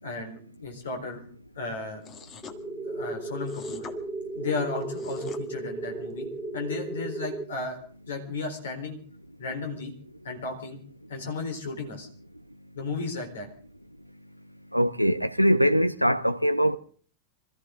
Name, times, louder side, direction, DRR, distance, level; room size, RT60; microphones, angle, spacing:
voice 1, 0.0-1.2 1.6-2.0 2.9-3.8 4.3-6.3 6.5-7.8 8.1-9.0 9.4-9.9 10.2-10.8 11.1-12.1 12.7-13.5, left 3 dB, 65° left, 4.0 m, -34 dB
sound 1, 2.0-2.6 3.4-4.0 4.8-5.4, left 6 dB, 30° left, 1.7 m, -45 dB
sound 2, 2.4-7.4, right 2 dB, ahead, 1.3 m, -35 dB
voice 2, 14.7-16.8, equal, 90° left, 0.7 m, -22 dB
26.0 x 14.5 x 3.8 m
figure-of-eight pair, 90°, 0 cm